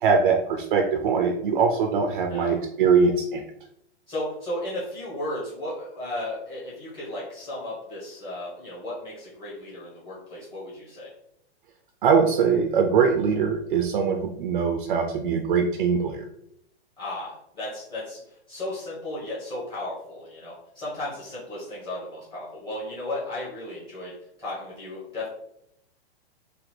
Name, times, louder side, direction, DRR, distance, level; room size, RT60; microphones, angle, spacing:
voice 1, 0.0-3.4 12.0-16.3, right 5 dB, 55° right, 4 dB, 0.6 m, -22 dB
voice 2, 2.3-2.6 4.1-11.1 17.0-25.3, left 1 dB, 15° left, -8 dB, 1.2 m, -35 dB
4.1 x 2.5 x 4.4 m, 0.78 s
hypercardioid pair, 160°, 32 cm